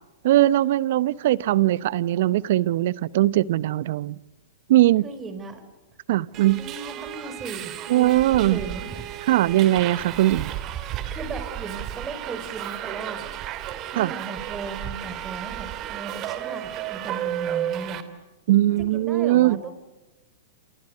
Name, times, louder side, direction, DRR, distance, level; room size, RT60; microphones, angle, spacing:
voice 1, 0.2-4.2 4.7-5.0 6.1-6.6 7.9-8.6 9.3-10.5 14.0-14.1 18.5-19.6, right 15 dB, 60° right, 21 dB, 0.8 m, -20 dB
voice 2, 5.0-5.7 6.6-9.1 11.1-13.2 13.8-18.0 18.8-19.7, right 4 dB, 20° right, 11 dB, 4.8 m, -37 dB
Subway metro underground, 6.3-18.0, right 11 dB, 35° right, 2.9 m, -33 dB
28.5 x 28.0 x 6.7 m, 1.1 s
hypercardioid pair, 110°, 0 cm